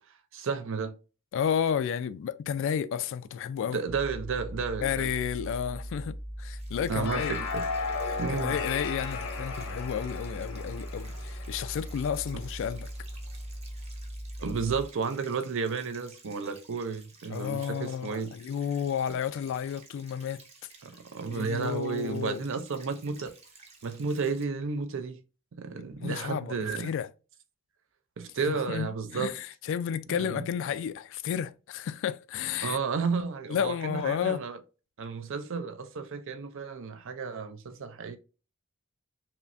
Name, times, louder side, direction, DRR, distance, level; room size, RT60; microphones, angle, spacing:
voice 1, 0.3-1.0 3.7-5.1 6.9-7.6 8.2-8.6 14.4-18.3 20.8-23.3 23.8-25.2 25.6-26.9 28.2-29.3 30.2-30.4 32.6-34.6 35.0-38.2, right 5 dB, 65° right, 0.5 m, -32 dB
voice 2, 1.3-3.8 4.8-7.4 8.0-12.9 17.3-20.4 21.3-22.4 25.7-27.1 28.5-32.8 33.5-34.4, left 8 dB, 60° left, 0.3 m, -32 dB
sound 1, 3.9-14.9, equal, 5° right, 0.6 m, -39 dB
sound 2, 6.6-24.4, right 4 dB, 30° right, 0.9 m, -55 dB
sound 3, 6.7-12.3, left 5 dB, 80° left, 0.8 m, -36 dB
5.6 x 2.1 x 2.5 m
head